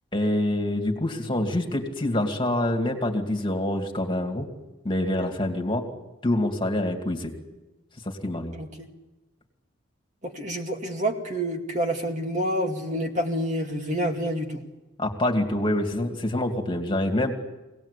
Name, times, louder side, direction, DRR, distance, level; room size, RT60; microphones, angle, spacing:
voice 1, 0.1-4.5 4.8-5.9 6.2-7.3 8.0-8.5 15.0-17.3, left 1 dB, 25° left, 3 dB, 2.4 m, -26 dB
voice 2, 8.5-8.9 10.2-14.6, equal, 35° right, 2 dB, 2.3 m, -28 dB
25.0 x 18.0 x 8.4 m, 1.1 s
head